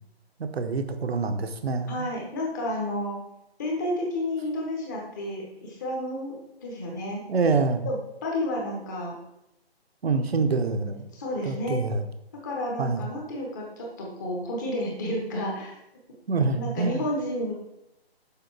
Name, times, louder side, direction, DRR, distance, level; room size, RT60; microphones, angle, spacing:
voice 1, 0.4-2.0 7.3-7.8 10.0-11.1 11.4-12.1 12.8-13.0 16.3-17.1, right 4 dB, 70° right, 7 dB, 0.9 m, -26 dB
voice 2, 1.9-3.2 3.6-6.4 6.6-7.2 7.8-9.1 11.1-11.8 12.4-15.8 16.5-17.5, left 1 dB, 20° left, -1 dB, 1.1 m, -31 dB
6.9 x 5.2 x 4.7 m, 0.84 s
hypercardioid pair, 165°, 32 cm